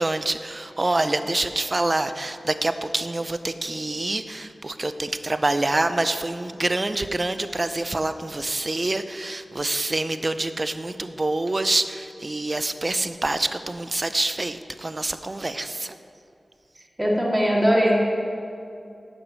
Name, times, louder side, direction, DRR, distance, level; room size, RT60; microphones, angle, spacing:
voice 1, 0.0-15.9, right 2 dB, 40° right, 11 dB, 0.5 m, -26 dB
voice 2, 17.0-18.0, equal, 15° right, -4 dB, 2.7 m, -20 dB
8.1 x 6.1 x 7.5 m, 2.6 s
cardioid pair, 45°, 0 cm